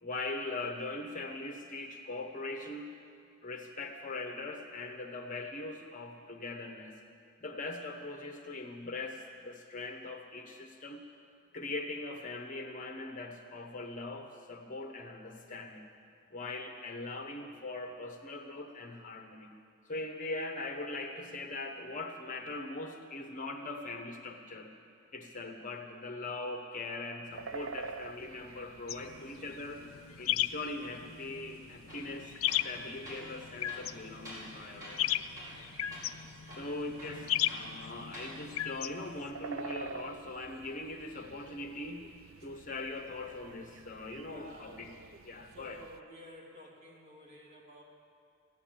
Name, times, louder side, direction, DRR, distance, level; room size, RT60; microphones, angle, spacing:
voice 1, 0.0-2.9 3.4-7.0 7.4-11.0 11.5-15.9 16.3-19.5 19.8-24.7 25.1-29.8 30.2-35.9 36.5-42.1 42.4-44.9 45.2-45.8, left 2 dB, 40° left, 4 dB, 1.1 m, -41 dB
sound 1, 27.3-46.0, right 5 dB, 70° right, 0.5 m, -50 dB
sound 2, 28.9-39.3, left 12 dB, 85° left, 0.4 m, -37 dB
Tools, 31.9-32.1 32.5-32.7 33.0-33.2 33.7-34.5 34.8-35.1 35.4-35.6 35.9-36.1 36.5-37.7 38.0-38.3, equal, 15° right, 5.1 m, -47 dB
voice 2, 44.3-44.8 45.5-47.8, equal, 35° right, -3 dB, 2.8 m, -52 dB
15.5 x 9.8 x 8.8 m, 2.4 s
head